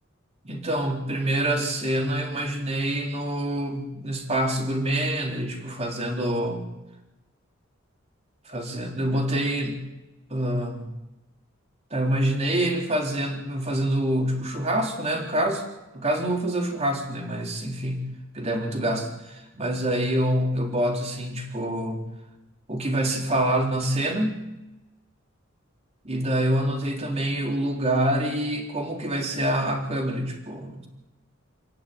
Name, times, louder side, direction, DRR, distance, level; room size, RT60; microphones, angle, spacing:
voice 1, 0.4-6.7 8.5-9.8 10.3-10.9 11.9-15.6 15.9-18.0 18.3-22.0 22.7-24.4 26.0-30.9, right 1 dB, 30° right, 2 dB, 3.7 m, -26 dB
28.0 x 11.0 x 9.4 m, 1.0 s
head